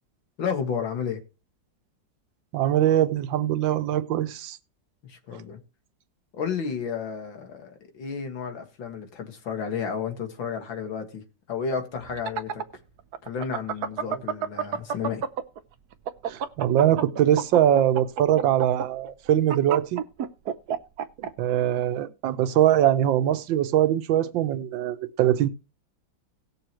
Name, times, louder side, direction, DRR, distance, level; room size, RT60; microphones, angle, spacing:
voice 1, 0.4-1.2 5.0-5.6 6.3-11.2 11.5-12.6 13.2-15.2, left 6 dB, 80° left, 2.5 m, -32 dB
voice 2, 2.5-4.6 14.1-14.2 16.3-20.0 21.2-25.5, right 11 dB, 80° right, 1.5 m, -22 dB
sound 1, 12.0-15.6 15.9-21.3, right 7 dB, 60° right, 1.2 m, -29 dB
18.5 x 6.8 x 3.0 m
omnidirectional pair, 2.1 m